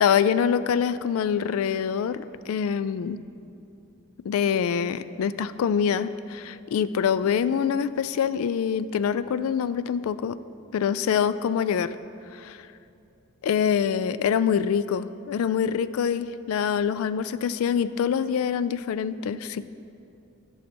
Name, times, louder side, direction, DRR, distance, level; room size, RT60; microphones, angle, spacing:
voice 1, 0.0-3.2 4.3-10.4 10.7-12.0 12.3-12.6 13.4-19.7, left 7 dB, 80° left, 14 dB, 0.3 m, -25 dB
11.5 x 6.5 x 4.4 m, 2.6 s
head